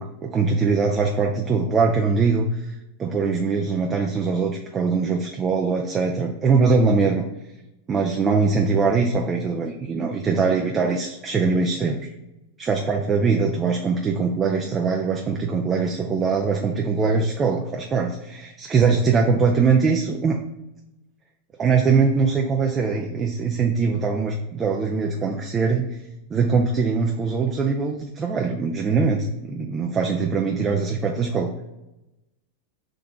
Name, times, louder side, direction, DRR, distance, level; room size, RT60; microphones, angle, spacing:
voice 1, 0.0-2.7 3.0-7.2 7.9-12.1 12.6-20.4 21.6-26.0 26.3-31.5, right 4 dB, 25° right, 2 dB, 0.4 m, -22 dB
3.8 x 2.8 x 3.5 m, 0.95 s
hypercardioid pair, 100°, 0 cm